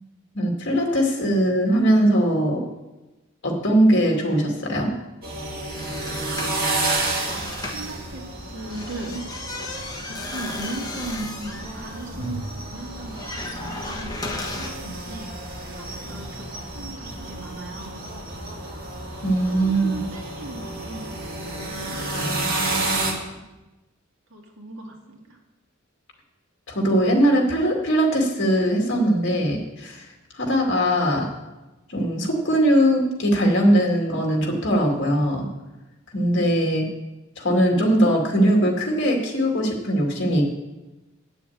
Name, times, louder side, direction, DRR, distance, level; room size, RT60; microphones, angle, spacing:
voice 1, 0.3-2.6 3.4-4.9 19.2-19.9 22.1-22.7 26.7-30.1 30.3-31.3 31.9-35.5 36.1-36.9 37.4-40.4, right 1 dB, 60° left, 1 dB, 2.3 m, -20 dB
sound 1, 5.2-23.1, right 2 dB, 45° right, 2.1 m, -31 dB
sound 2, 5.8-7.9 8.6-14.7, left 2 dB, 20° left, 1.3 m, -35 dB
voice 2, 7.3-9.3 10.1-15.3 15.7-16.5 16.7-18.0 19.2-22.0 23.3-23.5 24.3-25.4, right 2 dB, 70° right, -1 dB, 2.3 m, -38 dB
8.6 x 7.1 x 8.7 m, 1.1 s
head